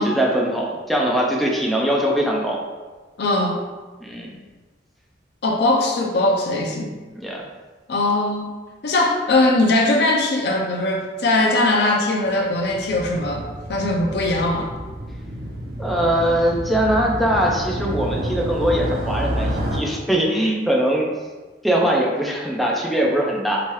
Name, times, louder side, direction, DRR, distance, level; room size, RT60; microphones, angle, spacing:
voice 1, 0.0-2.6 4.0-4.3 7.1-7.4 15.8-21.1 21.6-23.6, right 1 dB, ahead, -2 dB, 0.3 m, -21 dB
voice 2, 3.2-3.6 5.4-6.9 7.9-8.5 8.8-14.7, left 2 dB, 65° left, 1 dB, 0.5 m, -20 dB
Motorcycle, 12.2-19.8, equal, 55° right, 0.5 m, -29 dB
2.9 x 2.3 x 3.0 m, 1.3 s
head